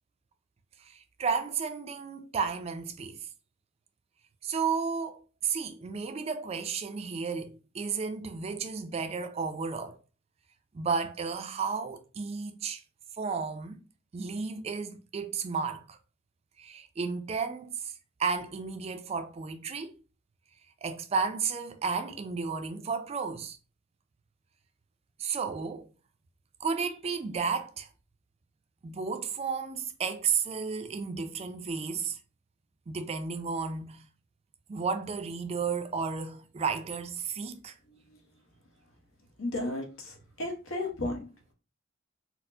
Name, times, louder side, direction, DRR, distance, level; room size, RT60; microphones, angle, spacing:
voice 1, 0.9-3.3 4.4-10.0 10.7-12.8 13.2-13.8 14.1-16.0 16.6-17.9 18.2-19.9 20.8-23.6 25.2-25.9 26.6-27.9 28.8-32.2 32.9-34.1 34.7-37.8, right 5 dB, 30° right, 0.3 m, -33 dB
voice 2, 39.4-41.2, left 2 dB, 85° left, 1.0 m, -33 dB
4.1 x 2.0 x 2.6 m
head